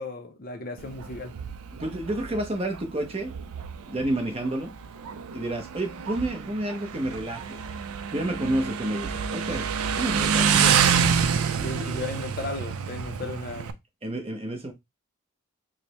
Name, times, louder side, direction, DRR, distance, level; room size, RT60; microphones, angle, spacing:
voice 1, 0.0-1.3 10.6-10.8 11.6-13.8, left 3 dB, 40° left, 0.5 m, -35 dB
Motorcycle, 0.8-13.7, right 7 dB, 80° right, 0.4 m, -27 dB
voice 2, 1.8-3.4 3.9-4.8 5.3-7.7 8.1-10.7 11.5-11.8 14.0-14.7, right 1 dB, 25° right, 0.6 m, -30 dB
4.9 x 2.1 x 2.8 m
head